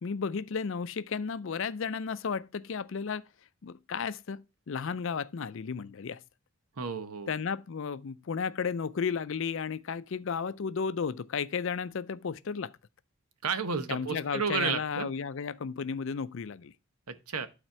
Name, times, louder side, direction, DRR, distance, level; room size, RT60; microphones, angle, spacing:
voice 1, 0.0-3.2 3.6-4.4 4.7-6.2 7.3-12.7 13.9-16.7, left 6 dB, 60° left, 0.4 m, -33 dB
voice 2, 6.8-7.3 13.4-15.1 17.1-17.5, right 5 dB, 90° right, 0.9 m, -32 dB
11.5 x 4.3 x 4.4 m
head